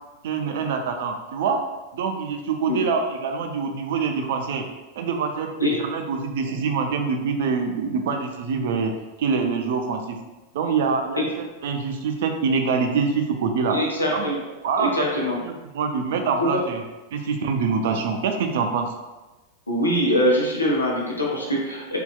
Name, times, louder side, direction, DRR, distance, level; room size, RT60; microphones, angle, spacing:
voice 1, 0.2-1.6 1.9-4.6 5.0-8.9 9.2-10.2 10.5-13.8 14.1-14.3 14.6-14.9 15.4-16.8 17.1-18.9, right 5 dB, 55° right, 4 dB, 0.3 m, -25 dB
voice 2, 13.7-14.4 14.8-15.4 16.5-16.6 19.7-22.0, equal, 80° left, -3 dB, 0.6 m, -23 dB
2.7 x 2.1 x 2.3 m, 1.1 s
figure-of-eight pair, 90°, 0 cm